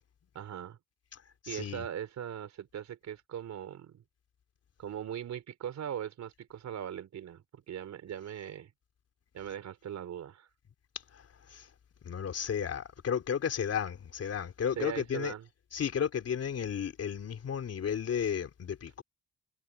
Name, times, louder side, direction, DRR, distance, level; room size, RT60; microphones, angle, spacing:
voice 1, 0.3-0.8 1.5-4.0 4.8-8.7 9.3-10.5 14.8-15.5, right 9 dB, 65° right, 4.2 m, -40 dB
voice 2, 1.4-1.9 11.5-11.7 12.0-15.3 15.7-19.0, left 8 dB, 55° left, 3.5 m, -33 dB
cardioid pair, 90°, 30 cm